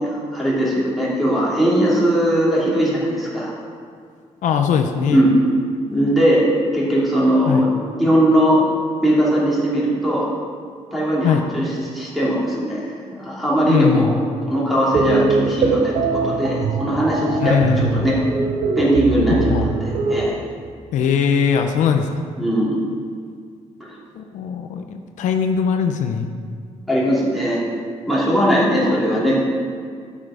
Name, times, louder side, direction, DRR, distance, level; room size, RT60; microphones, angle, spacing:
voice 1, 0.0-3.5 5.1-5.4 5.9-6.5 6.7-8.6 9.0-10.3 10.9-12.8 13.1-14.2 14.5-18.2 18.8-19.4 19.6-20.4 22.4-22.8 26.9-27.6 28.1-29.5, equal, ahead, -7 dB, 2.7 m, -19 dB
voice 2, 4.4-5.2 7.5-7.7 11.2-11.5 13.7-14.2 17.4-18.0 19.3-19.7 20.9-22.2 24.2-26.3 29.3-29.4, left 7 dB, 80° left, 5 dB, 0.8 m, -20 dB
sound 1, 14.9-20.3, right 5 dB, 60° right, 0.7 m, -22 dB
12.0 x 7.4 x 5.0 m, 2.2 s
cardioid pair, 165°, 13 cm